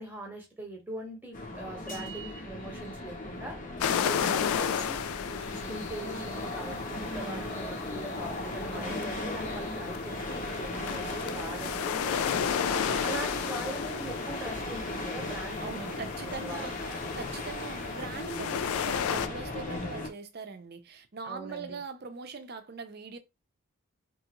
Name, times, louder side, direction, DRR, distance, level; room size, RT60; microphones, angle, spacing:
voice 1, 0.0-3.6 4.0-5.1 5.5-12.4 13.0-16.1 16.4-17.0 21.2-21.8, right 1 dB, 10° right, 0.9 m, -41 dB
sound 1, 1.3-20.1, left 2 dB, 40° left, 0.7 m, -37 dB
sound 2, 3.8-19.3, left 8 dB, 80° left, 0.3 m, -34 dB
voice 2, 7.2-7.5 8.7-9.2 12.7-13.2 15.6-16.9 17.2-23.2, right 4 dB, 45° right, 0.5 m, -42 dB
3.0 x 2.4 x 2.9 m
head